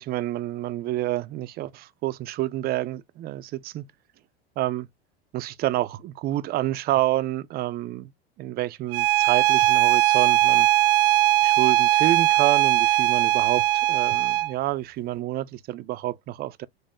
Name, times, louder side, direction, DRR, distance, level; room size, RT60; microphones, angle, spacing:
voice 1, 0.0-3.9 4.6-4.9 5.3-8.1 8.4-10.7 11.4-16.7, right 15 dB, 30° right, 0.4 m, -28 dB
Bowed string instrument, 8.9-14.5, right 15 dB, 65° right, 0.7 m, -20 dB
5.3 x 2.0 x 3.6 m
hypercardioid pair, 95°, 32 cm